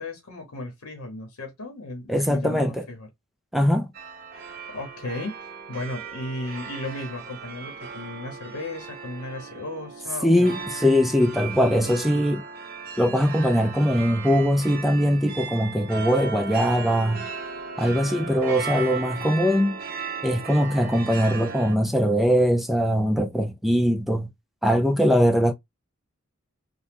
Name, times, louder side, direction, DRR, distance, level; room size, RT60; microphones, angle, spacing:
voice 1, 0.0-3.1 4.7-10.6, left 2 dB, 90° left, 0.8 m, -35 dB
voice 2, 2.1-2.7 3.5-3.9 10.2-12.4 13.0-17.3 17.8-19.8 20.2-24.3 24.6-25.5, equal, ahead, 0.3 m, -21 dB
sound 1, 3.9-21.8, right 5 dB, 45° right, 0.6 m, -36 dB
2.9 x 2.1 x 3.4 m
head